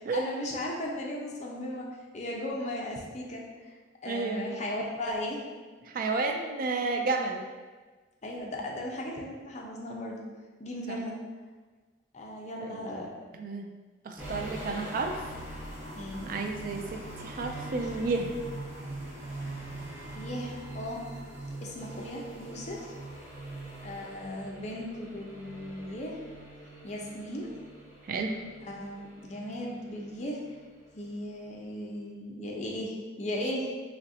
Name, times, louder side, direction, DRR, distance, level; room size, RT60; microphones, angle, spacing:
voice 1, 0.1-1.9 2.1-3.8 4.0-5.4 8.2-10.3 10.6-11.2 12.1-13.1 15.9-16.3 20.1-21.0 21.6-22.9 23.8-26.2 26.8-27.5 28.6-30.4 30.9-33.7, left 1 dB, 40° left, -1 dB, 0.6 m, -36 dB
voice 2, 4.0-4.4 5.8-7.4 10.9-11.0 12.6-13.1 13.4-13.7 14.0-15.2 16.2-18.3 28.0-28.3, right 3 dB, 50° right, 4 dB, 0.3 m, -31 dB
sound 1, 14.2-31.1 31.3-31.5, right 1 dB, 10° right, 0.9 m, -43 dB
4.0 x 3.1 x 2.6 m, 1.4 s
head